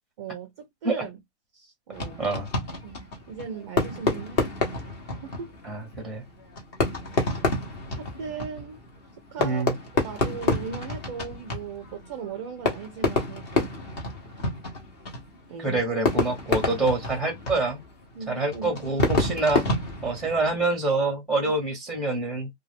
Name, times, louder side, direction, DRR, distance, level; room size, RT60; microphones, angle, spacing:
voice 1, 0.2-1.2 1.5-2.2 2.8-4.8 5.2-5.5 8.0-8.8 9.3-9.6 10.0-13.7 15.5-15.8 18.1-19.1, right 6 dB, 25° right, 0.5 m, -38 dB
Fireworks, 1.9-20.7, left 2 dB, 25° left, 0.9 m, -29 dB
voice 2, 5.6-6.2 9.4-9.7 15.6-17.8 18.3-19.6 20.0-22.5, right 3 dB, ahead, 0.9 m, -26 dB
2.4 x 2.3 x 3.4 m
hypercardioid pair, 150°, 35 cm